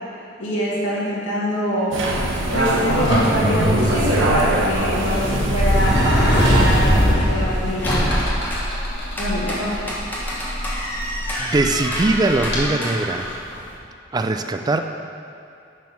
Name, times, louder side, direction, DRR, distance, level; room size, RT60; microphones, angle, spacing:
voice 1, 0.4-2.0 2.5-8.3 9.2-9.9, equal, 80° left, -7 dB, 1.9 m, -24 dB
sound 1, 1.9-7.1, right 1 dB, 80° right, 1.1 m, -23 dB
Sliding door, 2.0-12.6, equal, 60° left, 1.6 m, -22 dB
sound 2, 7.3-13.8, equal, 10° left, 1.4 m, -30 dB
voice 2, 11.4-13.3 14.1-14.8, right 2 dB, 20° right, 7 dB, 0.3 m, -21 dB
9.4 x 4.5 x 5.7 m, 2.6 s
head